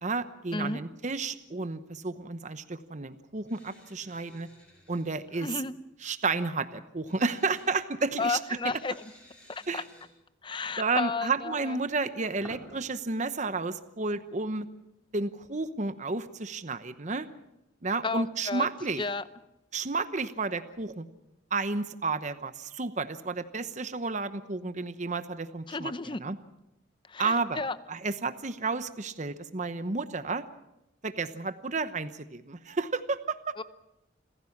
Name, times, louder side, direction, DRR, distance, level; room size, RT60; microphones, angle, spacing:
voice 1, 0.0-4.5 4.9-5.6 6.0-8.8 9.7-9.8 10.8-14.7 15.1-17.3 17.8-19.0 19.7-21.1 21.5-26.4 27.2-27.6 27.9-30.4 31.0-33.6, right 3 dB, 40° right, 11 dB, 0.9 m, -31 dB
sound 1, 3.5-5.1 7.0-7.7 8.8-10.1 11.8-12.7, equal, 5° left, 5.7 m, -53 dB
voice 2, 5.4-5.7 8.2-8.9 9.5-9.8 10.4-11.8 18.0-18.7 19.0-19.2 25.7-26.2 27.1-27.8 33.6-33.7, left 3 dB, 25° left, 14 dB, 0.7 m, -32 dB
27.5 x 15.5 x 7.2 m, 0.90 s
head